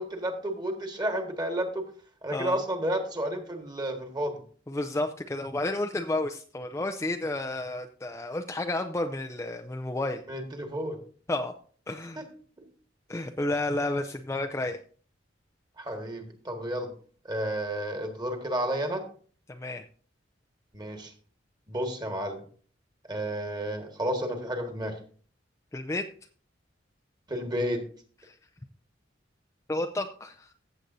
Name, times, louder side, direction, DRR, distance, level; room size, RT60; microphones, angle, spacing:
voice 1, 0.0-1.8 2.2-4.3 10.3-11.0 12.2-12.3 12.6-12.7 15.8-16.9 17.2-19.0 20.7-21.1 21.7-22.4 23.1-24.9 27.3-27.8, right 1 dB, 25° right, 4 dB, 1.7 m, -31 dB
voice 2, 4.7-10.2 11.3-11.5 11.9-12.2 13.1-14.8 19.5-19.8 25.7-26.1 28.2-28.4 29.7-30.5, left 2 dB, 15° left, 5 dB, 0.5 m, -31 dB
15.0 x 7.6 x 2.7 m, 0.43 s
head